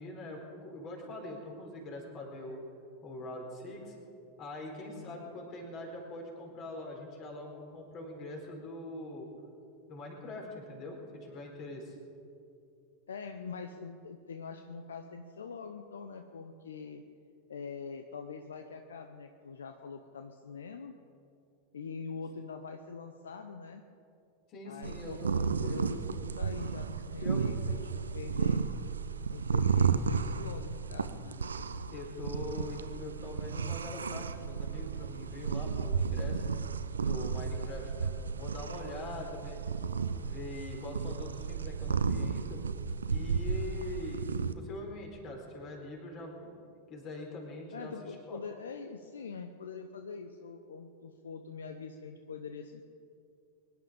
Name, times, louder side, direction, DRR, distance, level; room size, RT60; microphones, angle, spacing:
voice 1, 0.0-2.6 3.0-4.0 4.4-9.3 9.9-12.0 24.5-25.8 27.2-27.5 31.9-36.4 37.0-39.6 40.2-42.6 43.1-44.3 44.5-46.5 46.9-47.9 48.3-48.4, left 2 dB, 35° left, 1 dB, 4.2 m, -43 dB
voice 2, 13.1-17.0 17.5-20.9 21.7-23.8 24.6-28.7 29.3-31.4 47.7-52.8, left 5 dB, 65° left, 7 dB, 0.8 m, -44 dB
sound 1, 24.8-44.5, right 5 dB, 70° right, 0.7 m, -33 dB
23.0 x 11.0 x 5.2 m, 2.5 s
figure-of-eight pair, 90°, 0 cm